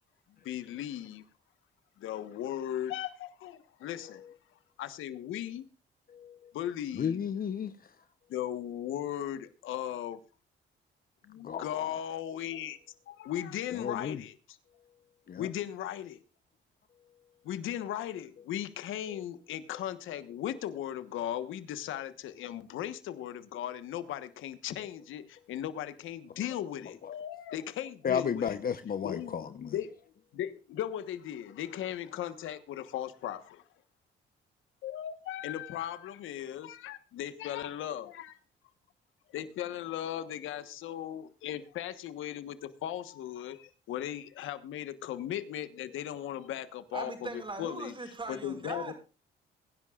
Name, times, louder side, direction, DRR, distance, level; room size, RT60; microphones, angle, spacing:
voice 1, 0.4-1.2 2.0-4.2 4.8-5.6 6.5-7.2 8.3-10.2 11.3-12.8 13.1-14.6 15.4-16.2 17.4-28.6 29.0-29.4 29.7-30.0 30.3-33.6 34.8-38.4 39.3-47.9 48.3-48.9, left 11 dB, 85° left, 1.3 m, -37 dB
voice 2, 6.9-7.7 11.4-11.9 13.8-14.2 15.3-15.5 28.0-29.7, left 7 dB, 45° left, 0.9 m, -33 dB
voice 3, 46.9-48.9, right 3 dB, 25° right, 5.4 m, -40 dB
23.0 x 11.0 x 2.5 m
cardioid pair, 90°, 20 cm